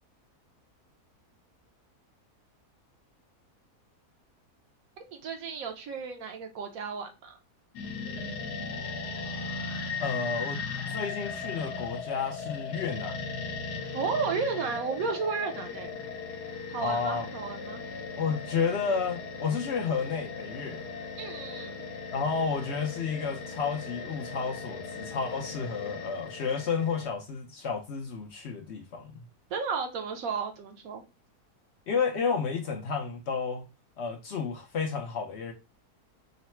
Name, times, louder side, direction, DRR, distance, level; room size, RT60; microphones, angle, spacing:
voice 1, 5.1-7.3 13.9-16.0 16.7-17.8 21.2-21.8 29.5-31.0, right 5 dB, 65° right, 1.2 m, -33 dB
sound 1, 7.7-27.1, left 4 dB, 80° left, 1.3 m, -38 dB
voice 2, 10.0-10.6 10.9-13.3 16.8-17.3 18.2-20.8 22.1-29.2 31.9-33.6 34.0-35.5, left 5 dB, 60° left, 0.7 m, -31 dB
3.9 x 2.1 x 4.3 m
omnidirectional pair, 1.7 m